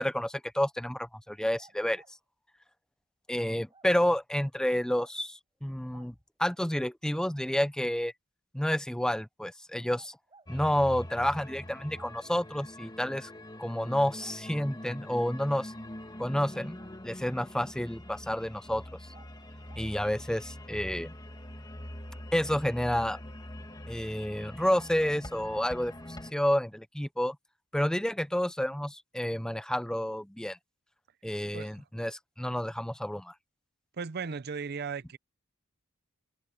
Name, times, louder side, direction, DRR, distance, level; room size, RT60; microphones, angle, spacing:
voice 1, 0.0-2.0 3.3-8.1 8.5-10.2 10.5-13.3 13.6-15.7 16.2-16.8 17.0-18.8 19.8-21.1 22.3-23.2 23.9-27.4 27.7-30.6 31.2-33.3, equal, 5° left, 0.6 m, -30 dB
sound 1, 1.6-2.1 3.4-3.9 4.6-5.2 5.9-6.1 7.9-8.0 9.9-10.5 11.9-12.2 14.2-14.9 16.5-17.5 19.1-19.3 19.7-19.9, right 3 dB, 25° right, 5.5 m, -59 dB
sound 2, 10.5-26.3, left 1 dB, 20° left, 1.9 m, -44 dB
voice 2, 31.5-31.8 34.0-35.2, right 5 dB, 50° right, 0.6 m, -36 dB
head